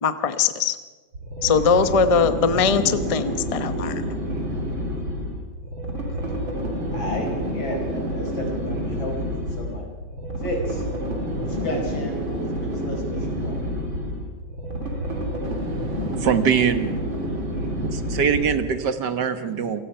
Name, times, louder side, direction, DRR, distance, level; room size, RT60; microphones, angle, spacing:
voice 1, 0.0-0.8 1.4-4.0, left 5 dB, 25° left, 10 dB, 0.7 m, -21 dB
sound 1, 1.1-18.8, equal, 85° right, 4.2 m, -28 dB
voice 2, 6.9-9.9 10.4-10.9 11.4-13.7, equal, 90° left, 2 dB, 5.3 m, -32 dB
voice 3, 15.6-17.0 17.7-19.8, right 7 dB, 65° right, 10 dB, 1.8 m, -23 dB
28.0 x 17.5 x 5.7 m, 1.3 s
omnidirectional pair, 2.1 m